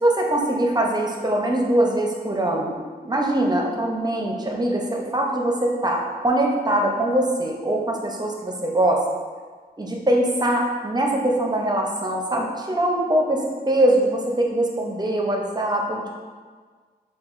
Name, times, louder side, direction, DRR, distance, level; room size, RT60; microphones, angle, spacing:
voice 1, 0.0-2.8 3.1-9.0 9.8-16.1, right 1 dB, 25° right, 0 dB, 0.6 m, -22 dB
6.5 x 2.3 x 2.5 m, 1.5 s
wide cardioid pair, 75°, 17 cm